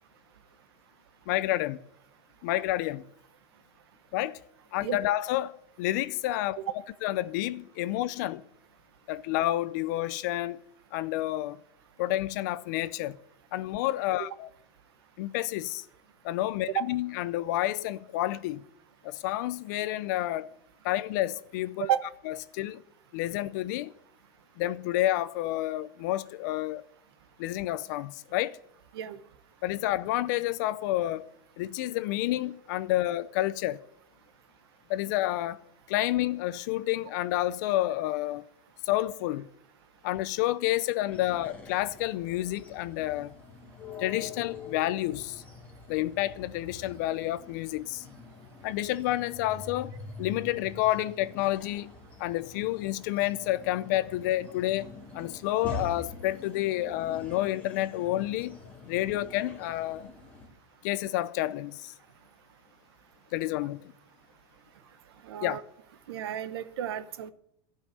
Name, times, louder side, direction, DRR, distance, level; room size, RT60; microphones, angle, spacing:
voice 1, 1.3-1.8 2.4-3.0 4.1-4.4 4.7-6.6 7.0-8.4 9.1-10.6 10.9-11.6 12.0-13.2 13.5-14.5 15.2-15.9 16.2-18.6 19.0-20.5 20.8-21.9 22.3-22.8 23.1-23.9 24.6-26.8 27.4-28.6 29.6-31.3 31.6-33.8 34.9-35.6 35.9-38.5 38.9-39.5 40.0-43.3 44.0-45.4 45.9-48.0 48.6-51.9 52.2-54.9 55.1-58.6 58.9-60.1 60.8-61.9 63.3-63.9 65.4-65.6, left 15 dB, 50° left, 0.5 m, -29 dB
sound 1, 41.1-60.5, left 3 dB, 10° left, 1.6 m, -45 dB
voice 2, 65.2-65.6 66.1-67.3, right 10 dB, 85° right, 1.0 m, -31 dB
15.0 x 5.6 x 9.4 m
supercardioid pair, 175°, 13 cm